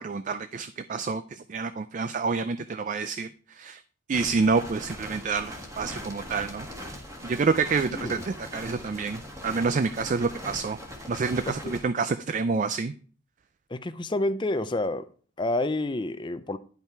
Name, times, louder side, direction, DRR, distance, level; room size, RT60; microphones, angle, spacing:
voice 1, 0.0-3.8 4.1-6.7 7.2-10.8 11.1-12.9, right 4 dB, 40° right, 0.3 m, -28 dB
sound 1, 4.1-11.8, equal, 15° right, 1.6 m, -41 dB
voice 2, 7.9-8.2 11.5-11.7 13.7-15.0 15.4-16.6, left 2 dB, 25° left, 0.5 m, -29 dB
10.5 x 5.7 x 4.5 m
head